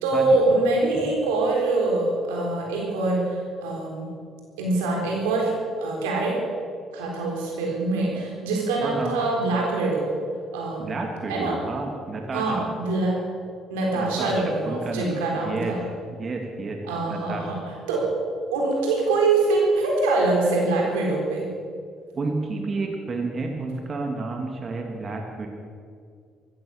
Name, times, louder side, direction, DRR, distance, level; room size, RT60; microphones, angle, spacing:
voice 1, 0.0-4.1 4.6-5.5 5.8-6.4 6.9-10.1 10.5-10.9 11.3-11.6 12.3-13.2 13.7-15.8 16.9-17.6 17.9-18.1 18.5-21.5, right 2 dB, 90° right, -1 dB, 4.1 m, -24 dB
voice 2, 8.8-9.2 10.8-12.7 13.9-15.1 15.4-16.8 17.0-17.5 22.1-25.5, right 3 dB, 45° right, 2 dB, 2.4 m, -30 dB
15.0 x 14.5 x 6.6 m, 2.2 s
supercardioid pair, 60°, 0 cm